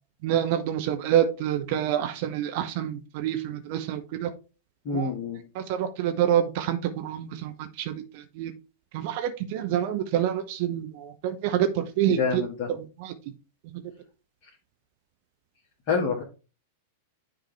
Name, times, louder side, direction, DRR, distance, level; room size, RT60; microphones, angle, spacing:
voice 1, 0.2-4.3 4.9-5.1 5.5-8.5 8.9-12.4 12.7-13.1, right 10 dB, 50° right, 8 dB, 0.7 m, -27 dB
voice 2, 4.9-5.4 12.2-12.7 15.9-16.2, left 5 dB, 45° left, -3 dB, 1.8 m, -26 dB
9.8 x 3.8 x 3.3 m, 0.33 s
figure-of-eight pair, 95°, 0 cm